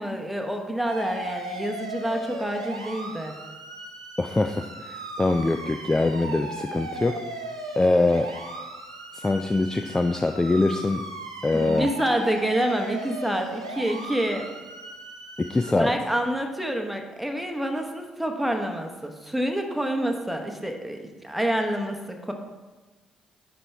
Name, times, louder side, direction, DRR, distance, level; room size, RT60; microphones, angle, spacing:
voice 1, 0.0-3.4 11.5-14.5 15.8-22.3, right 1 dB, 5° right, 3 dB, 1.1 m, -27 dB
sound 1, 0.8-15.7, right 2 dB, 90° right, 0.5 m, -37 dB
voice 2, 4.2-7.2 7.8-8.3 9.1-11.0 11.4-11.9 15.5-15.9, left 2 dB, 20° left, 7 dB, 0.4 m, -23 dB
11.0 x 4.2 x 3.4 m, 1.3 s
figure-of-eight pair, 40°, 3 cm